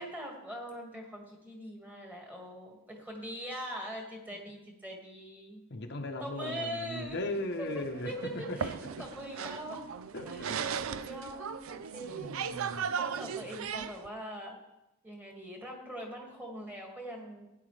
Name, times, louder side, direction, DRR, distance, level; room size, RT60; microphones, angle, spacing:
voice 1, 0.0-5.6 6.2-7.2 7.6-8.7 9.0-9.8 10.2-10.6 10.9-12.5 13.0-14.6 15.0-17.5, equal, 10° right, 0 dB, 2.0 m, -42 dB
voice 2, 5.7-9.0 10.1-10.6 12.1-12.9, left 2 dB, 50° left, 3 dB, 0.9 m, -38 dB
sound 1, 6.8-14.1, right 7 dB, 70° right, 0.5 m, -38 dB
15.5 x 9.6 x 3.3 m, 0.92 s
head